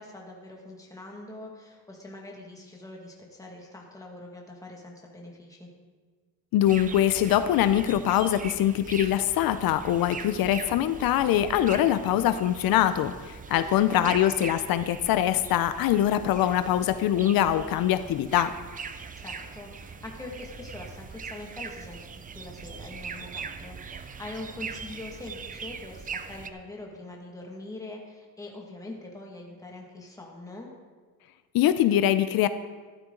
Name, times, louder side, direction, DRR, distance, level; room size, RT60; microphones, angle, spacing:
voice 1, 0.0-5.7 13.6-14.1 19.2-30.7, left 2 dB, 10° left, -1 dB, 1.8 m, -43 dB
voice 2, 6.5-18.5 31.5-32.5, left 11 dB, 80° left, 11 dB, 0.6 m, -23 dB
sound 1, 6.6-26.5, right 5 dB, 25° right, 0.5 m, -41 dB
14.0 x 11.5 x 3.8 m, 1.5 s
cardioid pair, 165°, 35 cm